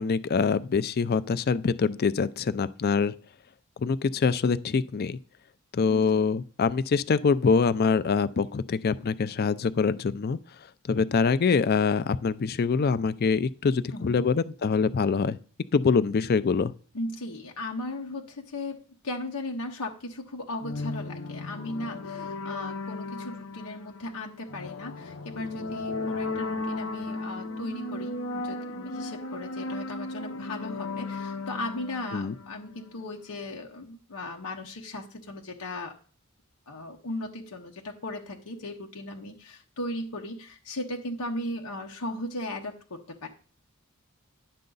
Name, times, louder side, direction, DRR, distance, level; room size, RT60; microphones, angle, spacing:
voice 1, 0.0-3.1 3.8-5.2 5.7-10.4 10.9-15.4 15.7-16.7 32.1-32.3, left 5 dB, 45° left, 0.4 m, -24 dB
voice 2, 13.9-14.3 16.9-18.8 19.0-36.0 36.7-43.3, left 1 dB, 90° left, 1.0 m, -37 dB
sound 1, 20.6-33.1, left 3 dB, 65° left, 0.8 m, -35 dB
10.5 x 6.6 x 3.9 m
head